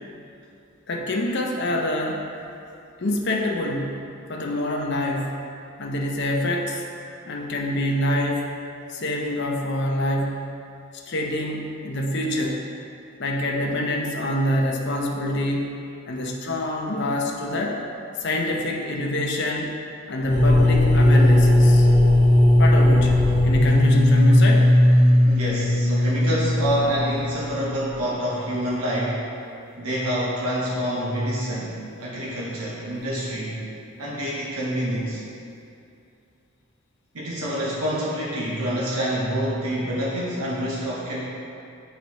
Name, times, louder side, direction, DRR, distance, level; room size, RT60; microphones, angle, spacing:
voice 1, 0.9-2.2 3.0-4.0 4.3-5.4 5.8-6.8 7.3-8.5 8.9-10.4 11.1-12.6 13.2-15.7 16.0-17.8 18.2-19.7 20.1-21.9 22.6-24.7, left 1 dB, 50° left, 0 dB, 0.7 m, -26 dB
sound 1, 20.2-28.0, left 1 dB, 10° left, 0.8 m, -17 dB
voice 2, 25.2-29.3 29.8-33.7 34.0-35.2 37.1-41.2, equal, 85° right, -6 dB, 1.0 m, -27 dB
8.9 x 4.0 x 3.1 m, 2.6 s
head